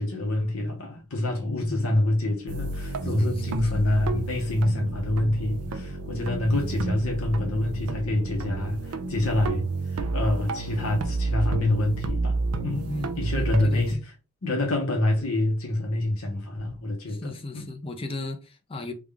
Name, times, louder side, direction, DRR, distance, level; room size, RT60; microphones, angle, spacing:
voice 1, 0.0-12.8 13.2-14.0 14.4-17.7, left 1 dB, 70° left, 0.9 m, -26 dB
voice 2, 1.6-2.0 3.2-3.9 6.4-6.8 12.7-14.0 17.1-18.9, left 2 dB, 25° left, 0.5 m, -36 dB
sound 1, 2.5-13.9, right 3 dB, 80° right, 0.5 m, -30 dB
3.5 x 2.3 x 3.4 m
head